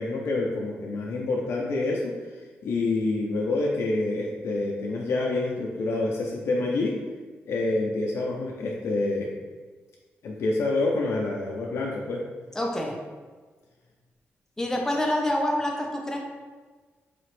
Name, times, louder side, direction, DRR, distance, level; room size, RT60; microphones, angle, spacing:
voice 1, 0.0-2.1 2.6-7.0 7.5-9.3 10.2-12.2, left 2 dB, 70° left, -2 dB, 0.5 m, -27 dB
voice 2, 12.5-13.0 14.6-16.2, left 1 dB, 10° left, 1 dB, 0.5 m, -27 dB
4.1 x 2.9 x 3.1 m, 1.4 s
wide cardioid pair, 140°, 5 cm